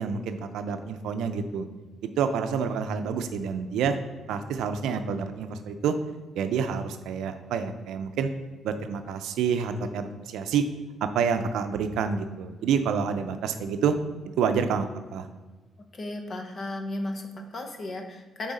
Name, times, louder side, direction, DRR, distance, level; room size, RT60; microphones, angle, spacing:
voice 1, 0.0-1.7 2.0-4.0 4.3-5.9 6.4-8.3 8.6-10.6 11.0-13.9 14.4-14.9 15.1-15.3, right 6 dB, 85° right, 8 dB, 0.5 m, -28 dB
voice 2, 15.9-18.5, left 2 dB, 45° left, 4 dB, 0.9 m, -35 dB
6.2 x 4.0 x 4.1 m, 1.3 s
cardioid pair, 90°, 0 cm